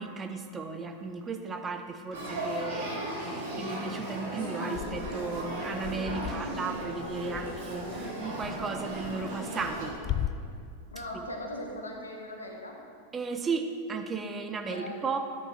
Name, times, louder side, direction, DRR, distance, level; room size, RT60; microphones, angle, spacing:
voice 1, 0.0-9.9 11.1-11.3 13.1-15.2, right 4 dB, 20° right, 6 dB, 0.7 m, -35 dB
Male speech man speaking / Child speech kid speaking / Conversation, 2.1-9.9, right 1 dB, 60° right, 2.5 m, -36 dB
sound 1, 4.7-10.3, left 11 dB, 35° left, 0.3 m, -38 dB
voice 2, 10.9-12.8 14.6-15.2, left 1 dB, 75° left, 1 dB, 1.4 m, -39 dB
12.0 x 10.5 x 2.8 m, 2.3 s
figure-of-eight pair, 90°, 0 cm